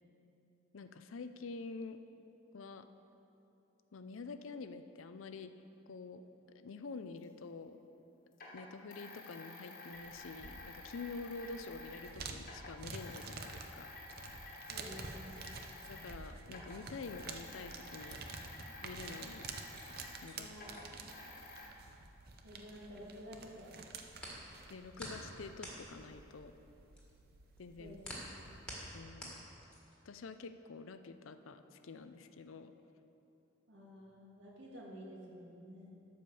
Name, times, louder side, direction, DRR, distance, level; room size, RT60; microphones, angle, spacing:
voice 1, 0.7-2.0 2.5-2.9 3.9-5.5 5.9-6.2 6.5-7.8 8.5-13.9 15.8-18.2 18.8-19.5 20.2-20.5 24.7-26.5 27.6-28.0 28.9-29.5 30.0-32.7, left 4 dB, 90° left, 10 dB, 0.5 m, -47 dB
sound 1, 7.2-7.3 8.3-12.1 12.4-16.2 16.5-21.7, left 2 dB, 45° left, 1.4 m, -51 dB
sound 2, 9.9-29.0, right 4 dB, 50° right, 0.6 m, -50 dB
voice 2, 14.7-15.4 20.3-21.4 22.4-23.8 27.8-28.0 33.7-35.9, equal, 65° right, -4 dB, 2.1 m, -51 dB
sound 3, 19.2-23.2 23.5-30.1, equal, 5° left, 1.7 m, -50 dB
11.5 x 5.1 x 7.0 m, 2.9 s
head